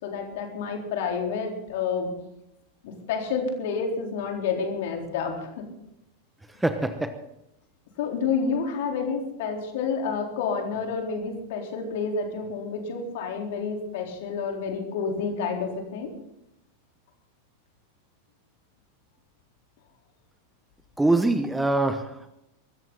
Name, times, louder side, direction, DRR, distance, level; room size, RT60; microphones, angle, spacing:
voice 1, 0.0-2.1 2.8-5.7 8.0-16.1, left 5 dB, 50° left, 1 dB, 4.1 m, -29 dB
voice 2, 6.6-7.2 21.0-22.3, right 2 dB, 5° right, 9 dB, 1.1 m, -24 dB
23.0 x 14.0 x 4.1 m, 0.83 s
figure-of-eight pair, 90°, 0 cm